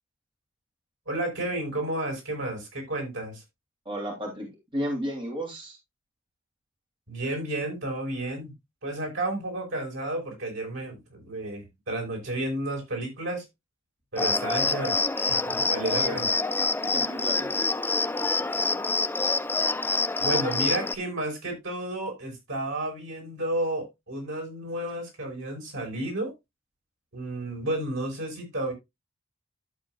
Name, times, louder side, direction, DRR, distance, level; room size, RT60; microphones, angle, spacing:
voice 1, 1.1-3.4 7.1-8.5 8.8-13.4 14.1-16.3 20.2-26.3 27.1-28.7, right 1 dB, 70° right, 5.1 m, -32 dB
voice 2, 3.8-5.8 15.9-16.3 16.9-17.6, equal, 25° right, 2.9 m, -33 dB
Cricket, 14.2-21.0, left 3 dB, 10° left, 0.5 m, -26 dB
11.5 x 7.9 x 2.4 m
head